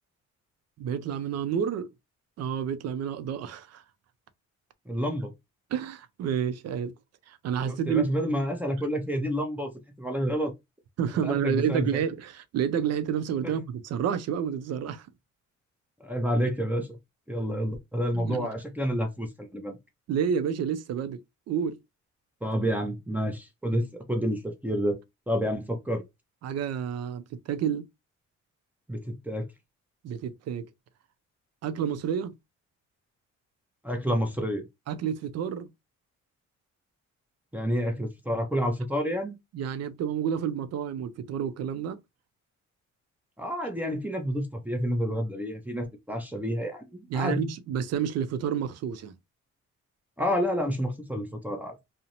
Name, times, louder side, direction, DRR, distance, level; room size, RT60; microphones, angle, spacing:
voice 1, 0.8-1.9 2.4-3.8 5.7-6.9 7.3-8.1 11.0-15.1 18.1-18.5 20.1-21.2 21.5-21.8 26.4-27.8 30.0-30.7 31.6-32.3 34.9-35.7 39.5-42.0 47.1-49.1, right 8 dB, 55° right, 0.4 m, -29 dB
voice 2, 4.9-5.3 7.7-9.7 10.0-10.5 11.2-11.9 13.4-13.5 16.0-17.0 17.3-19.8 22.4-25.0 25.3-26.0 28.9-29.5 33.8-34.6 37.5-39.4 43.4-47.5 50.2-51.8, equal, 5° right, 0.6 m, -29 dB
2.5 x 2.1 x 2.8 m
cardioid pair, 90°, 30 cm